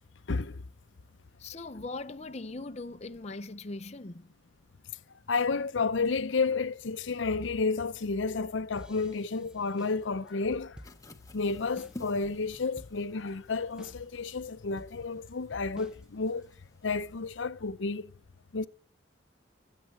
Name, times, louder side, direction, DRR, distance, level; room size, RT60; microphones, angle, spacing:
voice 1, 0.3-0.6 5.3-10.8 11.3-16.4 16.8-18.1 18.5-18.7, left 4 dB, 75° left, 0.7 m, -31 dB
voice 2, 1.4-4.3, left 2 dB, 35° left, 0.8 m, -40 dB
sound 1, 8.8-12.0 12.3-12.4 12.8-13.3 13.8-14.3 14.8-16.5, equal, 5° right, 1.1 m, -51 dB
sound 2, 10.8-17.3, left 1 dB, 20° left, 1.4 m, -53 dB
22.0 x 8.4 x 7.8 m
head